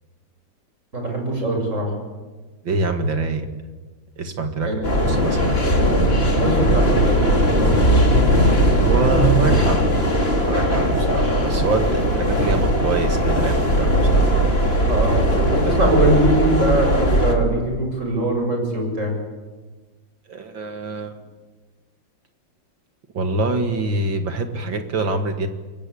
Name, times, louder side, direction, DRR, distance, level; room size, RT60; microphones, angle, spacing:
voice 1, 0.9-1.9 4.6-4.8 5.4-6.0 6.3-7.8 14.9-19.1, right 1 dB, 35° right, 2 dB, 7.8 m, -22 dB
voice 2, 2.6-3.5 4.2-5.6 8.8-9.8 10.4-14.3 20.3-21.1 23.1-25.5, right 3 dB, 60° right, 6 dB, 2.6 m, -25 dB
sound 1, 4.8-17.3, equal, 25° left, 3.5 m, -18 dB
27.5 x 23.0 x 8.5 m, 1.3 s
omnidirectional pair, 2.3 m